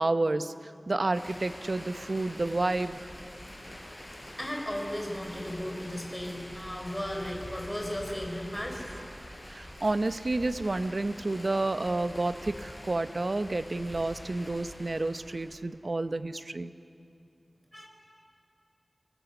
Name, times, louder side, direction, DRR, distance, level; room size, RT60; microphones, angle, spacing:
voice 1, 0.0-3.1 9.5-16.7, right 2 dB, 60° right, 11 dB, 0.7 m, -30 dB
sound 1, 1.1-15.6, left 1 dB, 30° left, 5.3 m, -45 dB
voice 2, 4.4-9.0 17.7-17.9, equal, 5° left, 1 dB, 4.1 m, -35 dB
26.0 x 18.0 x 8.1 m, 2.7 s
wide cardioid pair, 50°, 0 cm